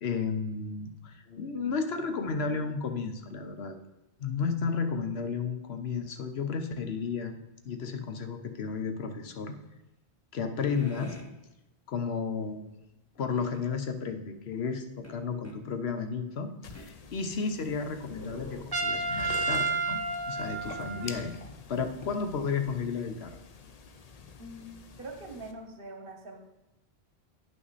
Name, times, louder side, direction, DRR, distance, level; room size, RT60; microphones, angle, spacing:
voice 1, 0.0-3.7 4.2-7.4 7.6-9.6 10.3-11.2 11.9-12.7 13.2-20.0 20.3-21.4 21.7-23.4, left 5 dB, 80° left, 7 dB, 1.1 m, -33 dB
sound 1, 10.6-11.3 13.3-13.6 15.0-15.6 16.7-16.9 17.6-19.2, left 1 dB, 15° left, 1.0 m, -47 dB
sound 2, 16.6-25.5, left 5 dB, 45° left, 0.6 m, -47 dB
Trumpet, 18.7-21.4, right 3 dB, 25° right, 0.6 m, -31 dB
voice 2, 24.4-24.7 25.0-26.4, right 2 dB, 60° right, 4 dB, 1.3 m, -43 dB
9.2 x 5.8 x 4.1 m, 0.98 s
omnidirectional pair, 1.1 m